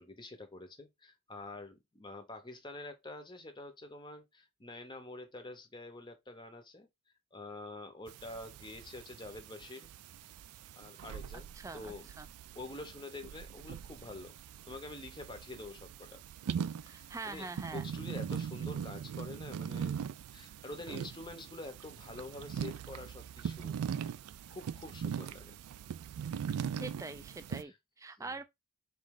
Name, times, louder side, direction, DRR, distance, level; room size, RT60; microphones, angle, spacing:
voice 1, 0.0-6.9 7.3-9.9 10.8-12.1 12.5-14.3 14.7-16.2 16.9-20.1 20.3-23.8 24.5-25.6 27.5-27.8 28.2-28.4, left 2 dB, 20° left, 0.7 m, -47 dB
sound 1, 8.1-27.6, right 7 dB, 90° right, 0.3 m, -41 dB
voice 2, 11.5-12.3 16.8-17.9 26.8-28.4, right 3 dB, 15° right, 0.3 m, -44 dB
3.8 x 3.1 x 3.5 m
head